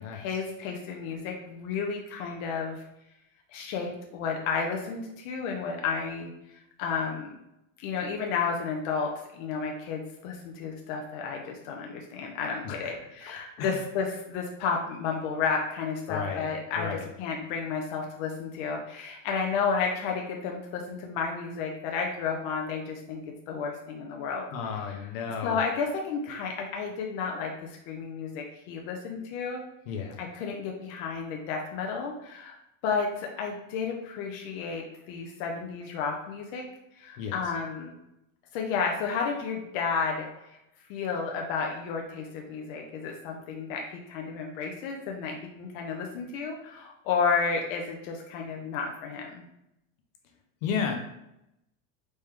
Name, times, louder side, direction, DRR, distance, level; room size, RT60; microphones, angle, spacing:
voice 1, 0.1-2.8 3.5-7.4 7.8-23.2 23.5-24.5 24.7-25.0 25.4-29.6 30.2-32.6 32.8-36.6 37.0-37.9 38.5-40.6 40.9-49.4, left 5 dB, 50° left, 1 dB, 0.7 m, -32 dB
voice 2, 12.6-13.0 13.6-13.8 16.1-16.5 16.8-17.1 24.5-25.6 29.9-30.2 37.2-37.3 50.6-50.9, left 6 dB, 80° left, 3 dB, 1.0 m, -32 dB
4.1 x 3.3 x 3.6 m, 0.85 s
cardioid pair, 175°, 39 cm